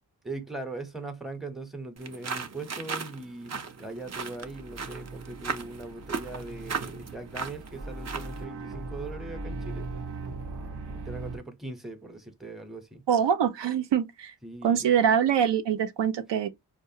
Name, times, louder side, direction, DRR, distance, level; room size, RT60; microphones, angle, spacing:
voice 1, 0.2-9.8 10.7-13.0 14.4-14.9, right 2 dB, ahead, 0.7 m, -40 dB
sound 1, 2.0-8.4, right 5 dB, 40° right, 0.6 m, -37 dB
sound 2, 4.0-11.4, right 3 dB, 70° right, 0.9 m, -39 dB
voice 2, 13.1-14.3 14.6-16.5, right 8 dB, 90° right, 0.6 m, -24 dB
4.6 x 2.2 x 2.7 m
wide cardioid pair, 90°, 41 cm